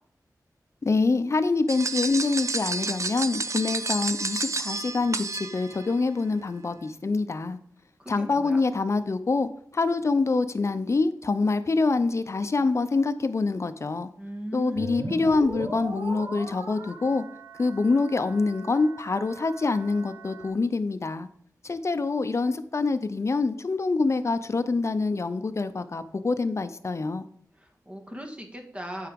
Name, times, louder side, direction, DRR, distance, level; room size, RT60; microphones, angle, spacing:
voice 1, 0.8-7.6 8.1-14.1 14.5-17.2 17.6-21.3 21.6-27.3, left 3 dB, 45° left, 0.7 m, -25 dB
sound 1, 1.7-5.9, right 3 dB, 50° right, 0.6 m, -30 dB
voice 2, 8.0-8.6 14.2-15.4 27.6-29.1, equal, 20° right, 1.6 m, -38 dB
sound 2, 14.8-20.5, right 2 dB, 70° right, 1.7 m, -39 dB
9.0 x 4.8 x 5.2 m
wide cardioid pair, 80°, 7 cm